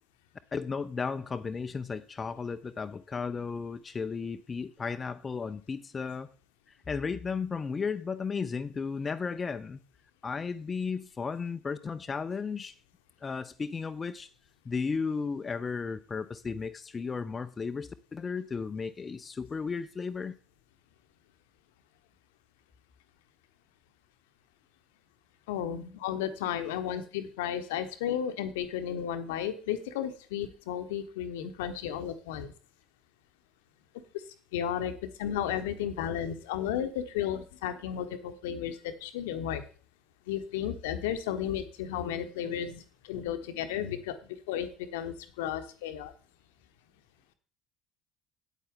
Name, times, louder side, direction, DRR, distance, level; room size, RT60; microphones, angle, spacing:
voice 1, 0.5-6.3 6.9-9.8 10.2-12.8 13.2-14.3 14.7-20.3, left 5 dB, 25° left, 0.5 m, -34 dB
voice 2, 25.5-32.5 34.5-34.9 35.2-39.6 40.3-44.1 44.5-46.1, left 9 dB, 65° left, 0.9 m, -33 dB
9.1 x 8.6 x 3.7 m
figure-of-eight pair, 60°, 0 cm